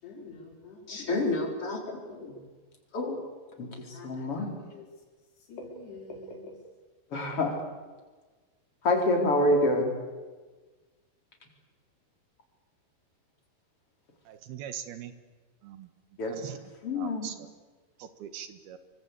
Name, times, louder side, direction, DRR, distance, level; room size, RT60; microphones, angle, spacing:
voice 1, 0.0-1.2 2.1-2.5 3.9-4.9 5.5-6.5, left 2 dB, 80° left, 0 dB, 7.1 m, -46 dB
voice 2, 0.9-2.0 2.9-3.2 3.6-3.7 4.0-4.5 7.1-7.5 8.8-9.9 16.2-16.3 16.8-17.3, left 1 dB, 35° left, 2 dB, 5.2 m, -27 dB
voice 3, 14.3-15.1 15.6-15.9 16.3-16.6 17.0-17.5 18.0-18.8, right 10 dB, 75° right, 10 dB, 3.3 m, -41 dB
27.5 x 24.5 x 8.5 m, 1.3 s
omnidirectional pair, 4.7 m